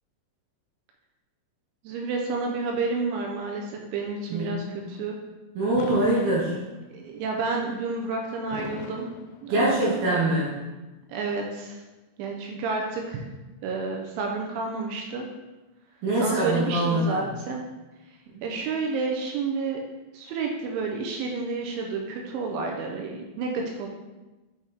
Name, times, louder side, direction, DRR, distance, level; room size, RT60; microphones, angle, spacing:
voice 1, 1.8-5.2 6.9-9.1 9.4-10.0 11.1-11.8 12.2-13.2 13.6-15.3 16.2-17.6 18.4-19.8 20.1-23.9, right 4 dB, 80° right, 1 dB, 3.0 m, -30 dB
voice 2, 4.3-4.8 5.6-6.6 9.5-10.5 16.0-17.2 18.3-18.4, right 1 dB, 65° right, -6 dB, 2.8 m, -24 dB
Fireworks, 5.8-7.1 8.5-10.1, left 7 dB, 90° left, 3.3 m, -40 dB
8.5 x 6.2 x 3.6 m, 1.1 s
omnidirectional pair, 5.8 m